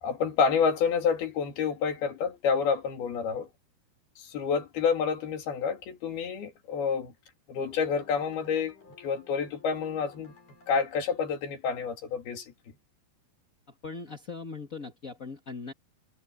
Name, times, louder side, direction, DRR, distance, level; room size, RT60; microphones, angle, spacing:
voice 1, 0.0-3.5 4.2-7.1 7.5-10.3 10.7-12.5, left 6 dB, 70° left, 4.6 m, -28 dB
sound 1, 7.5-11.0, left 6 dB, 50° left, 8.4 m, -55 dB
voice 2, 13.7-15.7, left 4 dB, 35° left, 1.4 m, -40 dB
omnidirectional pair, 4.7 m